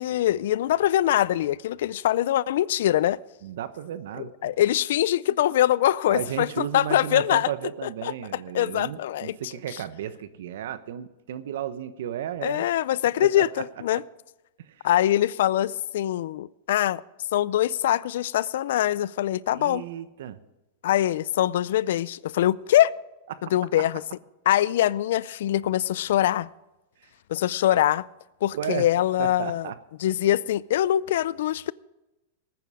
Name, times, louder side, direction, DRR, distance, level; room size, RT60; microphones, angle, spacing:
voice 1, 0.0-3.2 4.2-7.5 7.8-9.3 12.4-14.0 14.8-17.0 17.3-19.8 20.8-22.9 23.5-24.0 24.5-26.5 27.3-28.1 28.4-29.7 30.0-31.7, left 12 dB, 75° left, 0.4 m, -23 dB
voice 2, 3.4-4.5 6.1-12.7 13.2-13.5 14.6-14.8 19.5-20.4 23.3-23.4 23.8-23.9 28.5-28.9 29.2-29.8, right 10 dB, 75° right, 1.0 m, -34 dB
19.5 x 9.4 x 4.9 m
supercardioid pair, 135°, 0 cm